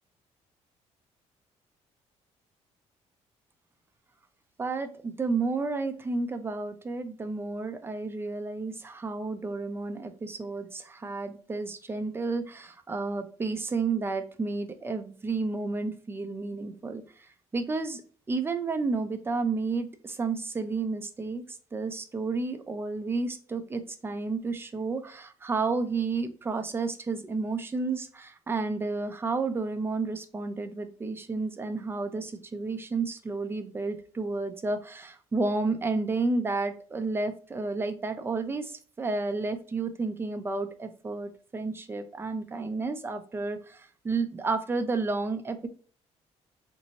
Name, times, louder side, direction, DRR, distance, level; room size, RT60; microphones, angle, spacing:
voice 1, 4.6-18.0 18.3-45.7, right 3 dB, 20° right, 8 dB, 0.4 m, -31 dB
3.9 x 2.6 x 2.9 m, 0.42 s
cardioid pair, 135°, 12 cm